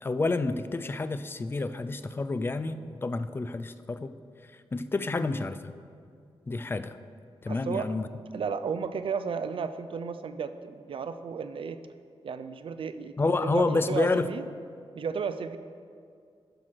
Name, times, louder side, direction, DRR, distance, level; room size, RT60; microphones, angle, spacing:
voice 1, 0.0-4.1 4.7-5.7 6.5-7.0 7.4-8.1 13.2-14.3, left 3 dB, 20° left, 12 dB, 0.4 m, -29 dB
voice 2, 7.5-8.0 8.3-11.8 12.2-14.5 14.9-15.6, right 6 dB, 60° right, 11 dB, 0.4 m, -34 dB
13.0 x 4.7 x 6.2 m, 2.3 s
wide cardioid pair, 155°, 10 cm